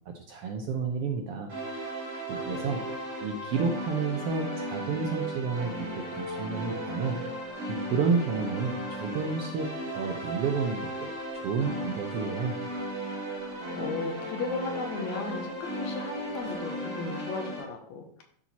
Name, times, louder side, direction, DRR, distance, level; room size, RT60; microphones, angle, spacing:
voice 1, 0.1-1.5 2.0-2.8 3.2-7.2 7.7-12.6, right 5 dB, 70° right, 3 dB, 1.5 m, -31 dB
sound 1, 1.5-17.6, right 1 dB, 40° right, 3.2 m, -36 dB
voice 2, 2.4-2.9 13.4-18.0, left 3 dB, 75° left, 4 dB, 2.3 m, -36 dB
sound 2, 3.8-4.9 5.8-17.6, left 1 dB, 55° left, 3.8 m, -53 dB
12.0 x 4.4 x 4.2 m, 0.62 s
omnidirectional pair, 3.4 m